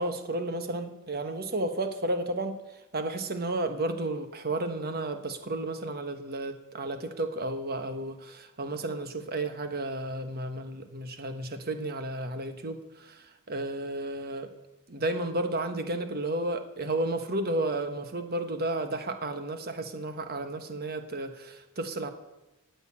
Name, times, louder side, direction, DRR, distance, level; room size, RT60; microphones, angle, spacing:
voice 1, 0.0-14.5 14.9-22.1, right 2 dB, 45° right, 8 dB, 1.3 m, -32 dB
18.0 x 8.0 x 8.7 m, 0.98 s
head